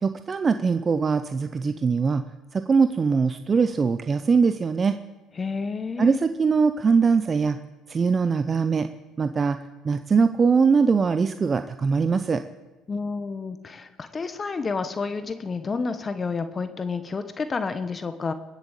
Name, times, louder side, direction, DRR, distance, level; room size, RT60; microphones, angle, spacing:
voice 1, 0.0-2.2 2.5-5.0 6.0-7.6 7.9-8.9 9.2-9.6 9.8-12.4, right 5 dB, 30° right, 10 dB, 0.7 m, -22 dB
voice 2, 5.3-6.3 12.9-18.3, left 4 dB, 25° left, 10 dB, 1.0 m, -30 dB
21.0 x 8.3 x 8.1 m, 1.1 s
supercardioid pair, 105°, 0 cm